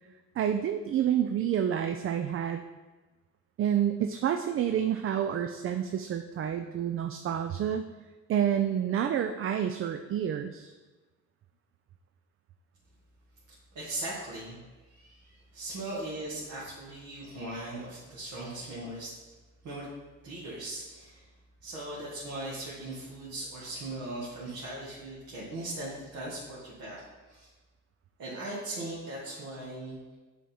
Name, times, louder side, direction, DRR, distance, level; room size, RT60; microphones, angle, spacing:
voice 1, 0.4-2.6 3.6-7.9 8.3-10.7, right 9 dB, 45° right, 7 dB, 0.4 m, -29 dB
voice 2, 13.7-14.6 14.9-19.2 19.6-19.9 20.2-21.3 21.6-27.5 28.2-30.0, right 1 dB, 70° right, -7 dB, 1.8 m, -39 dB
7.1 x 3.7 x 4.3 m, 1.2 s
cardioid pair, 90°, 30 cm